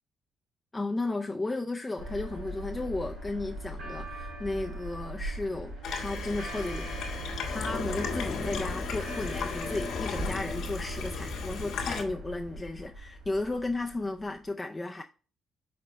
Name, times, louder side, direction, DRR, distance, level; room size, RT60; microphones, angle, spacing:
voice 1, 0.7-15.0, left 2 dB, 20° left, 0.5 m, -34 dB
sound 1, 2.0-14.4, right 1 dB, 60° right, 3.7 m, -40 dB
Water tap faucet / Sink (filling or washing), 5.8-12.0, left 5 dB, 80° left, 1.6 m, -35 dB
6.1 x 4.2 x 3.7 m
cardioid pair, 90°, 0 cm